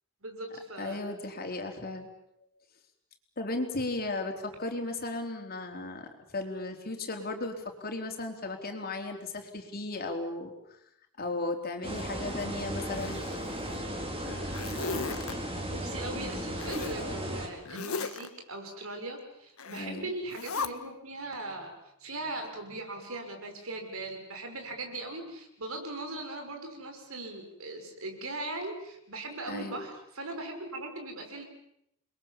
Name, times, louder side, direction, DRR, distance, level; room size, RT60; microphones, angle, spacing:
voice 1, 0.2-1.0 15.7-21.7 22.0-31.4, right 2 dB, 70° right, 4 dB, 5.7 m, -39 dB
voice 2, 0.8-2.1 3.4-10.5 11.2-13.2 16.1-16.5 19.8-20.1 29.5-29.8, left 2 dB, 45° left, 4 dB, 3.9 m, -35 dB
sound 1, 11.8-17.5, equal, 25° right, 4.4 m, -35 dB
Zipper (clothing), 12.8-13.8 14.2-15.3 16.6-17.0 17.6-18.3 19.6-19.9 20.3-20.7, left 4 dB, 75° left, 1.5 m, -37 dB
29.5 x 22.5 x 7.3 m, 0.77 s
head